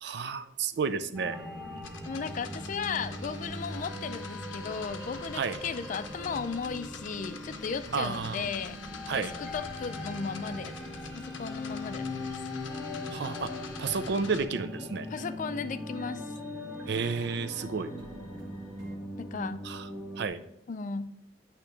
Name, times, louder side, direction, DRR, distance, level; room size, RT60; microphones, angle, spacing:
voice 1, 0.0-1.4 5.3-5.6 7.9-8.5 9.1-9.3 13.1-13.5 13.8-15.1 16.9-17.9 19.6-19.9 20.2-20.4, right 5 dB, 60° right, 11 dB, 0.4 m, -31 dB
sound 1, 1.1-20.3, left 2 dB, ahead, 0.7 m, -41 dB
sound 2, 1.2-18.9, right 1 dB, 75° right, 0.9 m, -48 dB
sound 3, 1.8-14.4, left 5 dB, 90° left, 0.6 m, -46 dB
voice 2, 2.1-8.8 9.2-12.4 15.1-16.3 19.2-19.6 20.7-21.1, left 5 dB, 45° left, 12 dB, 0.4 m, -36 dB
8.6 x 2.9 x 4.5 m, 0.79 s
head